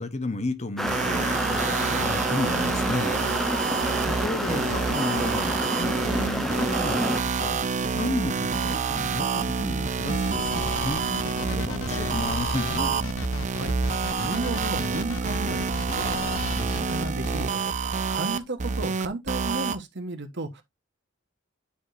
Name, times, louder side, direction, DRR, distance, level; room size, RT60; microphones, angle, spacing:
voice 1, 0.0-3.1 3.7-7.6 7.9-13.0, left 2 dB, 35° left, 0.9 m, -33 dB
sound 1, 0.8-7.2, equal, ahead, 0.7 m, -29 dB
sound 2, 0.9-19.8, right 5 dB, 40° right, 0.6 m, -28 dB
sound 3, 10.1-17.4, left 5 dB, 70° left, 0.4 m, -35 dB
voice 2, 14.2-16.2 16.6-20.6, right 2 dB, 60° right, 1.3 m, -34 dB
9.7 x 4.9 x 2.6 m
head